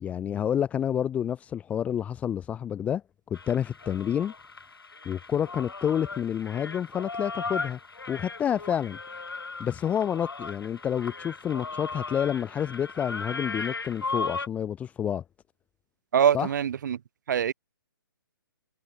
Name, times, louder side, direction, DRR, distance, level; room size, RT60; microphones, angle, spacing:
voice 1, 0.0-3.0 3.3-4.3 5.0-7.8 8.1-9.0 9.6-15.2 16.3-16.5, left 9 dB, 10° left, 0.6 m, -29 dB
sound 1, 3.3-14.5, left 4 dB, 80° left, 2.1 m, -37 dB
voice 2, 16.1-17.0 17.3-17.5, right 8 dB, 55° right, 1.4 m, -23 dB
figure-of-eight pair, 135°, 12 cm